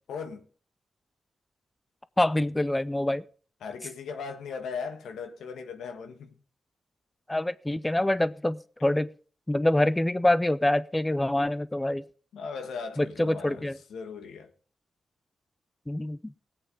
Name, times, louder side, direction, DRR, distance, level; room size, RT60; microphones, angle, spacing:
voice 1, 0.1-0.4 3.6-6.4 12.3-14.5, left 5 dB, 90° left, 1.5 m, -38 dB
voice 2, 2.2-3.2 7.3-9.1 9.5-12.0 13.0-13.8 15.9-16.2, left 1 dB, 15° left, 0.5 m, -25 dB
19.0 x 8.3 x 3.9 m
cardioid pair, 75°, 0 cm